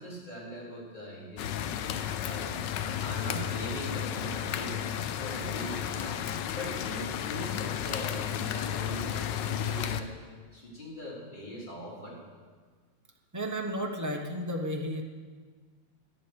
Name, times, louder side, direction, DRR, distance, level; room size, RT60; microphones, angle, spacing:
voice 1, 0.0-2.6 3.0-4.8 5.2-6.2 6.5-10.1 10.5-12.2, equal, 20° left, -6 dB, 4.1 m, -41 dB
sound 1, 1.4-10.0, left 9 dB, 70° left, 1.2 m, -33 dB
voice 2, 13.3-15.0, equal, 20° right, 1 dB, 0.5 m, -33 dB
11.0 x 9.2 x 8.0 m, 1.5 s
omnidirectional pair, 2.3 m